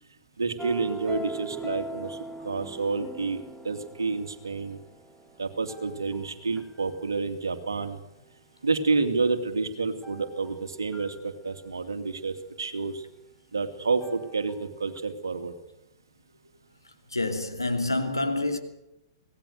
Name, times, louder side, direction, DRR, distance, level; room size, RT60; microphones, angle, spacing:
voice 1, 0.4-4.8 5.4-8.0 8.6-13.0 13.5-15.5, right 4 dB, 75° right, 2.7 m, -29 dB
sound 1, 0.6-6.8 10.0-10.6 10.9-11.2 14.0-14.6 15.0-15.1, right 1 dB, ahead, 1.4 m, -41 dB
voice 2, 17.1-18.6, left 2 dB, 90° left, 2.8 m, -27 dB
25.0 x 18.5 x 6.7 m
figure-of-eight pair, 110°, 2 cm